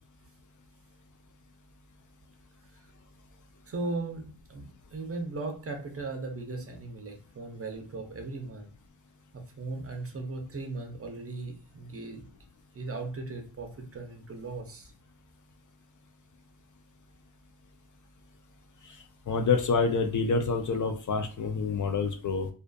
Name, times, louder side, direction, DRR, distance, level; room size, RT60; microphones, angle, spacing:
voice 1, 3.7-8.7 9.3-12.3 12.7-14.9, right 3 dB, 35° right, 4 dB, 0.5 m, -37 dB
voice 2, 19.3-22.5, left 4 dB, 50° left, 5 dB, 0.4 m, -27 dB
2.5 x 2.4 x 2.2 m, 0.39 s
wide cardioid pair, 95°, 42 cm